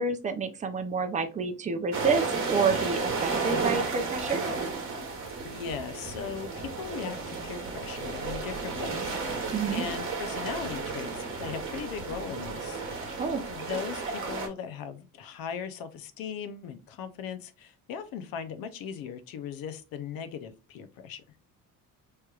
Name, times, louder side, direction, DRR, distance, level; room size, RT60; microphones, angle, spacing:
voice 1, 0.0-4.4 9.5-9.8 13.2-13.4, right 5 dB, 20° right, 8 dB, 0.5 m, -29 dB
sound 1, 1.9-14.5, right 4 dB, 35° right, 1.2 m, -33 dB
voice 2, 5.4-13.2 13.5-21.2, left 7 dB, 70° left, 10 dB, 0.7 m, -39 dB
4.5 x 3.2 x 2.3 m, 0.31 s
cardioid pair, 150°, 36 cm